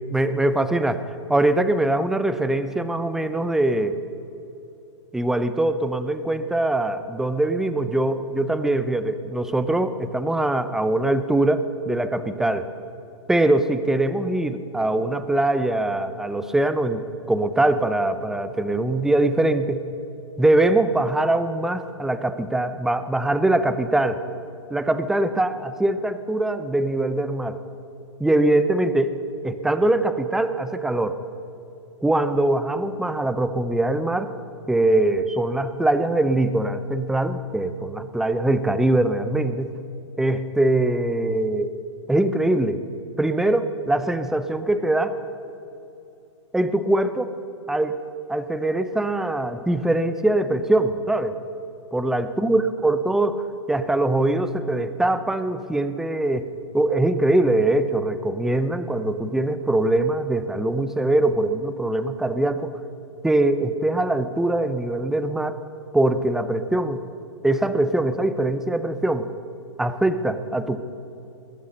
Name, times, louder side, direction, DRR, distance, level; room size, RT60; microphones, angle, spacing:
voice 1, 0.1-1.0 1.3-4.0 5.1-12.6 13.3-17.0 17.3-19.8 20.4-24.2 24.7-27.6 28.2-29.2 29.4-31.2 32.0-34.3 34.7-39.7 40.2-41.8 42.1-42.8 43.2-45.1 46.5-47.3 47.7-48.0 48.3-51.4 51.9-53.4 53.7-56.5 56.7-62.7 63.2-65.6 65.9-67.0 67.4-69.3 69.8-70.8, right 2 dB, 5° right, 12 dB, 0.6 m, -22 dB
20.0 x 11.0 x 6.5 m, 2.9 s
hypercardioid pair, 120°, 16 cm